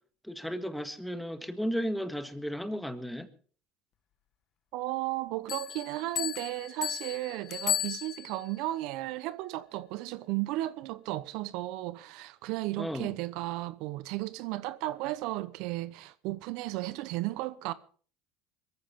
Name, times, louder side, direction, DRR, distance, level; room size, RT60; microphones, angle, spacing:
voice 1, 0.2-3.3 12.8-13.1, equal, ahead, 1.7 m, -34 dB
voice 2, 4.7-17.7, right 17 dB, 70° right, 0.8 m, -34 dB
sound 1, 5.5-8.5, left 10 dB, 50° left, 1.4 m, -34 dB
22.0 x 15.0 x 3.6 m
supercardioid pair, 95°, 0 cm